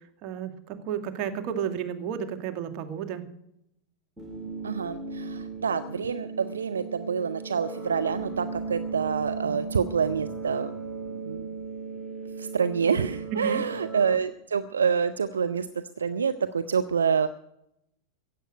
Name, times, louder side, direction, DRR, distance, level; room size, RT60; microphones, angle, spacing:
voice 1, 0.2-3.2 9.4-9.6 13.3-13.6, right 8 dB, 40° right, 7 dB, 1.9 m, -32 dB
sound 1, 4.2-14.2, right 4 dB, 10° right, 2.8 m, -37 dB
voice 2, 4.6-10.7 11.2-11.5 12.4-15.7 16.0-17.3, right 6 dB, 70° right, 11 dB, 0.6 m, -27 dB
15.5 x 7.9 x 9.2 m, 0.79 s
figure-of-eight pair, 90°, 0 cm